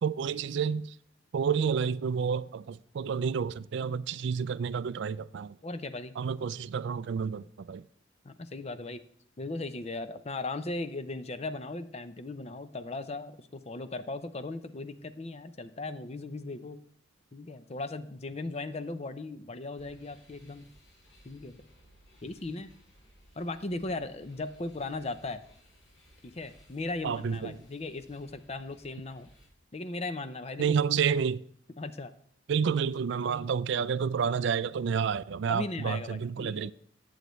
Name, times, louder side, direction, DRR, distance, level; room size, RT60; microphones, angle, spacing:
voice 1, 0.0-1.0 1.3-5.6 6.2-7.8 27.0-27.6 30.6-31.4 32.5-36.7, right 6 dB, 60° right, 0.3 m, -30 dB
voice 2, 5.6-6.1 8.2-9.0 9.4-16.8 17.3-20.7 21.2-21.6 22.2-22.7 23.4-25.4 26.2-29.3 29.7-30.7 31.8-32.1 35.5-36.7, left 2 dB, 35° left, 0.6 m, -37 dB
sound 1, 19.7-29.5, equal, 60° left, 4.5 m, -60 dB
18.0 x 7.9 x 3.1 m
head